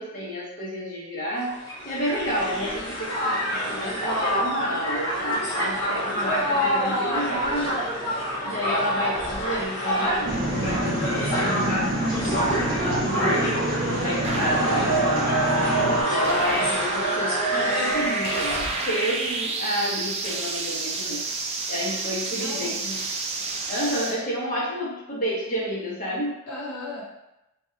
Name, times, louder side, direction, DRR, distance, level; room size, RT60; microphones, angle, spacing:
voice 1, 0.0-1.6 1.8-7.9 8.4-11.9 12.3-13.6 14.0-15.4 16.0-21.2 21.7-23.0 23.7-26.4, equal, 40° left, -6 dB, 1.2 m, -30 dB
Crowd, 1.5-18.8, equal, 20° left, 1.5 m, -27 dB
sound 1, 10.2-24.2, right 3 dB, 30° right, 0.4 m, -30 dB
sound 2, 10.3-16.0, right 1 dB, 45° right, 0.9 m, -29 dB
voice 2, 14.2-14.7 22.0-22.8 26.5-27.3, left 2 dB, 85° left, -5 dB, 0.6 m, -37 dB
3.0 x 2.6 x 3.7 m, 0.92 s
head